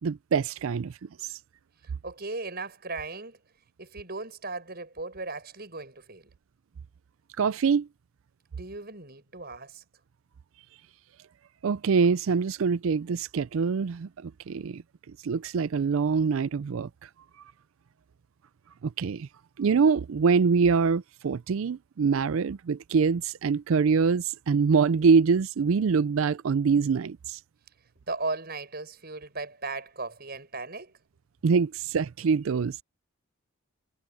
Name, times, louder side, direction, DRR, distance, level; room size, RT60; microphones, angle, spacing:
voice 1, 0.0-0.9 7.4-7.9 11.6-14.8 15.2-16.9 19.0-19.3 19.6-27.4 31.4-32.8, right 5 dB, 70° right, 0.4 m, -24 dB
voice 2, 2.0-3.4 3.8-6.3 8.5-9.8 28.1-30.9, right 3 dB, 45° right, 7.2 m, -37 dB
head